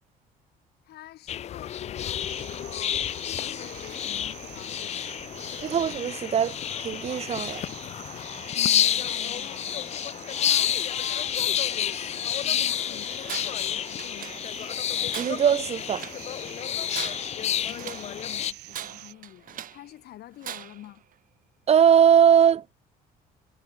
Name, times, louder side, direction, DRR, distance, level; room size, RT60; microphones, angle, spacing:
voice 1, 0.8-3.1 3.5-5.3 8.4-9.7 10.3-14.9 17.2-21.0, left 14 dB, 70° left, 4.2 m, -47 dB
sound 1, 1.3-18.5, left 10 dB, 40° left, 0.4 m, -29 dB
sound 2, 2.2-19.1, right 18 dB, 85° right, 7.6 m, -46 dB
voice 2, 5.6-7.6 15.2-16.1 21.7-22.6, right 8 dB, 40° right, 0.7 m, -20 dB
Tools, 13.2-13.7 14.0-14.7 15.1-16.3 16.8-18.2 18.7-19.9 20.4-20.9, right 10 dB, 55° right, 1.7 m, -40 dB
cardioid pair, 110°, 17 cm